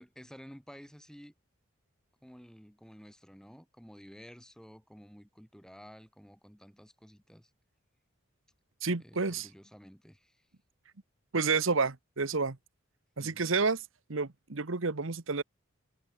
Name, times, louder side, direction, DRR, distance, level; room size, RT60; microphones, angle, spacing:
voice 1, 0.0-1.3 2.2-7.5 9.0-10.5 13.2-13.4, equal, 5° left, 3.9 m, -52 dB
voice 2, 8.8-9.5 11.3-12.6 13.2-13.8 14.1-15.4, right 4 dB, 70° right, 1.2 m, -30 dB
head